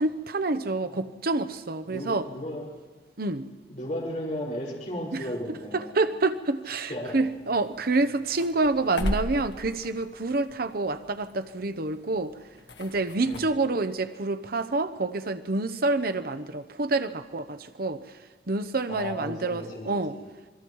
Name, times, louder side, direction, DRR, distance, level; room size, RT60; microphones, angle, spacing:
voice 1, 0.0-2.3 3.2-3.5 5.1-12.3 12.8-18.0 18.5-20.2, right 2 dB, 55° right, 10 dB, 0.9 m, -28 dB
voice 2, 1.9-2.6 3.7-5.9 6.9-7.2 13.2-13.5 18.9-20.2, equal, 45° left, -5 dB, 5.1 m, -35 dB
sound 1, 7.1-13.4, equal, 75° left, 1.8 m, -38 dB
27.0 x 21.5 x 4.7 m, 1.3 s
head